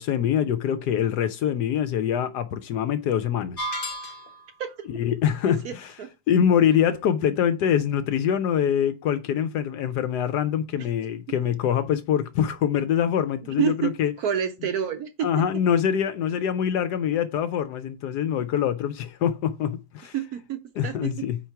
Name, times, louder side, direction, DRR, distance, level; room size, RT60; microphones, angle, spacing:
voice 1, 0.0-3.7 4.9-5.9 6.3-14.1 15.2-20.1 20.8-21.4, left 9 dB, 70° left, 1.0 m, -24 dB
sound 1, 3.6-4.5, equal, 35° left, 1.0 m, -32 dB
voice 2, 5.4-6.1 10.8-10.9 13.4-13.9 14.2-15.3 20.1-21.1, right 8 dB, 65° right, 1.0 m, -28 dB
4.5 x 4.5 x 5.7 m
omnidirectional pair, 2.0 m